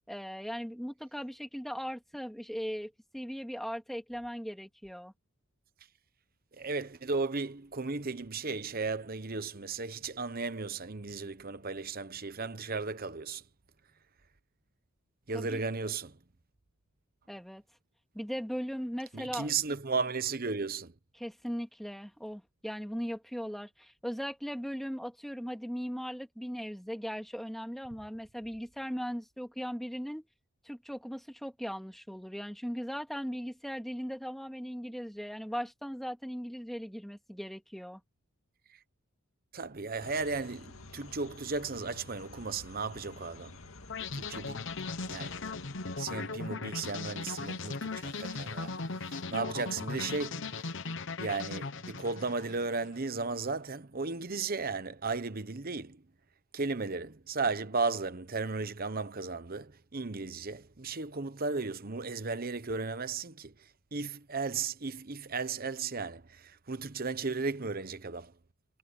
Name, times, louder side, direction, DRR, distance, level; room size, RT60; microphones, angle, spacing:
voice 1, 0.1-5.1 15.3-15.6 17.3-17.6 18.1-19.5 21.2-30.3 30.6-38.0, equal, ahead, 2.4 m, -38 dB
voice 2, 6.5-13.4 15.3-16.2 19.1-20.9 39.5-43.6 44.1-44.7 45.1-45.4 46.0-50.7 51.2-56.0 56.5-68.3, right 4 dB, 45° right, 1.1 m, -35 dB
sound 1, 40.0-46.0, left 2 dB, 80° left, 2.2 m, -50 dB
sound 2, 43.9-52.9, left 4 dB, 60° left, 1.1 m, -38 dB
head